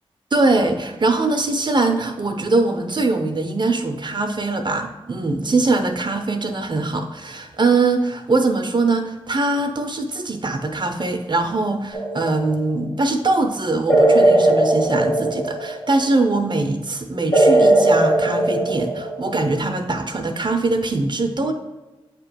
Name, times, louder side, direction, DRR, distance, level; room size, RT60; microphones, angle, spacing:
voice 1, 0.3-21.5, right 3 dB, 50° right, 5 dB, 0.6 m, -22 dB
sound 1, 11.9-12.5 13.9-16.0 17.3-19.4, right 1 dB, 70° left, 1.8 m, -17 dB
8.0 x 3.0 x 5.0 m, 1.1 s
cardioid pair, 55°, 10 cm